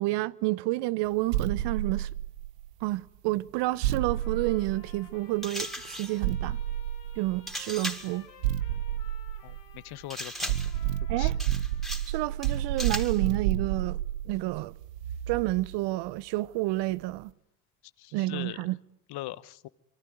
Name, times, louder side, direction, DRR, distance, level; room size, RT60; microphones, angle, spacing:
voice 1, 0.0-2.1 2.8-6.6 7.2-8.3 11.1-11.4 12.1-14.0 14.3-14.7 15.3-17.3 18.1-18.8, right 19 dB, 60° right, 1.1 m, -29 dB
sound 1, 1.3-2.8 3.8-5.4 6.2-7.6 8.4-10.0 10.5-15.8, right 12 dB, 80° right, 1.2 m, -31 dB
Trumpet, 3.7-12.5, left 10 dB, 85° left, 7.0 m, -55 dB
sound 2, 5.4-6.2 7.5-8.2 10.1-10.8 11.4-12.2 12.4-13.2, equal, ahead, 3.9 m, -37 dB
voice 2, 9.8-10.5 11.2-11.3 18.0-18.6 19.1-19.7, left 16 dB, 55° left, 1.2 m, -40 dB
26.5 x 23.5 x 9.5 m
hypercardioid pair, 70°, 47 cm